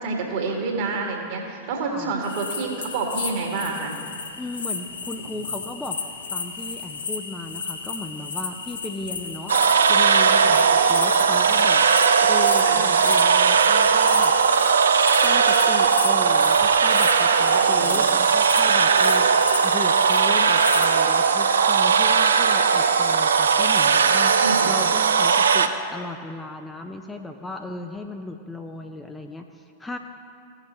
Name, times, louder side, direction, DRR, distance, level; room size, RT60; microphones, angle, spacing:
voice 1, 0.0-4.0 5.2-5.3 12.6-12.8 17.6-18.0 24.4-24.7, right 4 dB, 50° right, 0 dB, 1.9 m, -28 dB
sound 1, 2.2-20.9, left 5 dB, 70° left, 0.8 m, -33 dB
voice 2, 4.4-6.0 6.3-14.3 15.2-30.0, left 2 dB, 10° left, 4 dB, 0.5 m, -36 dB
sound 2, 9.5-25.7, right 6 dB, 70° right, 0.4 m, -18 dB
16.5 x 6.4 x 3.2 m, 2.5 s
figure-of-eight pair, 90°, 0 cm